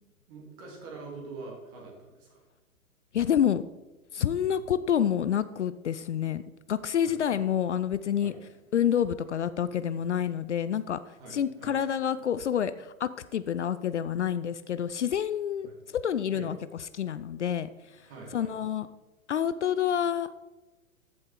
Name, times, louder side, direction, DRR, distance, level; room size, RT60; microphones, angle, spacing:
voice 1, 0.3-2.4 7.0-7.1 8.2-8.4 11.2-11.8 15.6-15.7 16.3-16.5 18.0-18.5, right 3 dB, 30° right, -1 dB, 3.4 m, -44 dB
voice 2, 3.1-3.6 4.1-6.4 6.7-8.3 8.7-18.9 19.3-20.3, left 9 dB, 55° left, 14 dB, 0.6 m, -28 dB
14.0 x 7.7 x 3.8 m, 1.1 s
figure-of-eight pair, 115°, 41 cm